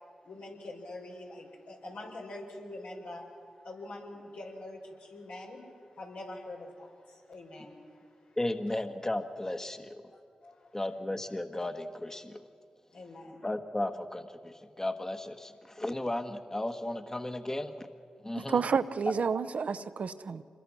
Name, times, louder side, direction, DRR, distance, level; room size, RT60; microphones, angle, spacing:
voice 1, 0.2-3.3 3.6-5.6 5.9-8.4 10.1-10.7 12.9-13.5, left 2 dB, 85° left, -2 dB, 4.7 m, -45 dB
voice 2, 8.4-10.0 10.7-12.4 13.4-17.9 18.2-18.6, left 1 dB, 20° left, 7 dB, 1.3 m, -35 dB
voice 3, 18.5-20.4, right 5 dB, 70° right, 11 dB, 0.8 m, -30 dB
26.0 x 21.5 x 6.1 m, 2.4 s
cardioid pair, 50°, 2 cm